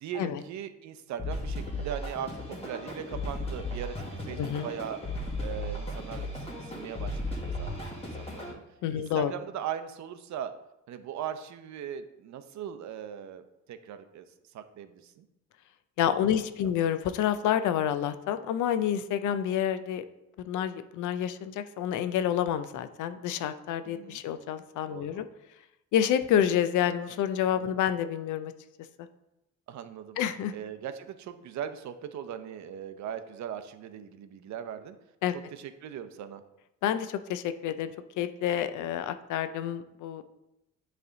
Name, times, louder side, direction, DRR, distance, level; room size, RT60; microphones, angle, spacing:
voice 1, 0.0-5.0 5.4-7.9 8.2-8.6 8.9-10.5 10.9-13.4 13.7-14.3 14.5-15.2 16.1-16.3 16.6-16.7 23.9-24.2 24.9-25.2 29.7-30.2 30.5-35.0 35.5-36.4, right 9 dB, 65° right, 10 dB, 0.6 m, -39 dB
sound 1, 1.2-8.5, left 1 dB, 20° left, 1.6 m, -36 dB
voice 2, 8.8-9.3 16.0-20.0 20.4-25.3 25.9-28.5 30.2-30.5 35.2-35.3 36.8-40.2, left 10 dB, 80° left, 11 dB, 0.5 m, -28 dB
8.4 x 3.4 x 3.9 m, 0.91 s
cardioid pair, 90°, 30 cm